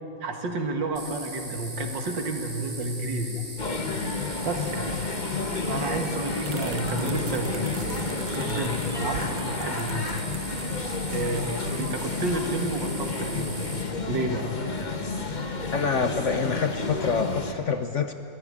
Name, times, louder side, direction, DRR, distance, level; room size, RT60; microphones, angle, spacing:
voice 1, 0.0-3.4 4.4-5.2 5.7-7.7 8.3-10.1 11.1-11.5 11.8-14.5, right 2 dB, 75° right, 4 dB, 2.6 m, -31 dB
sound 1, 1.0-13.8, right 1 dB, 20° right, 3.0 m, -39 dB
sound 2, 3.6-17.5, left 4 dB, 30° left, 1.2 m, -31 dB
sound 3, 5.7-11.8, right 9 dB, 60° right, 1.0 m, -40 dB
voice 2, 15.7-18.1, left 5 dB, 55° left, 8 dB, 0.9 m, -26 dB
21.5 x 16.5 x 9.9 m, 2.6 s
omnidirectional pair, 2.0 m